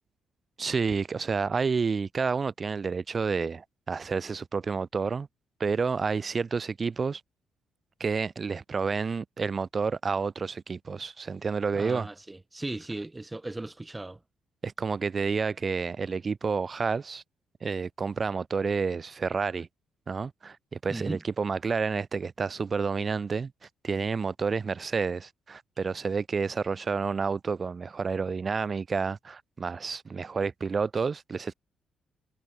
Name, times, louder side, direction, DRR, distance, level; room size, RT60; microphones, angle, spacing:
voice 1, 0.6-5.3 5.6-7.2 8.0-12.1 14.6-17.2 17.6-19.7 20.1-23.5 23.8-31.5, right 5 dB, 35° right, 6.3 m, -29 dB
voice 2, 11.7-14.2 20.9-21.2, right 2 dB, 15° right, 3.5 m, -37 dB
cardioid pair, 90°, 0 cm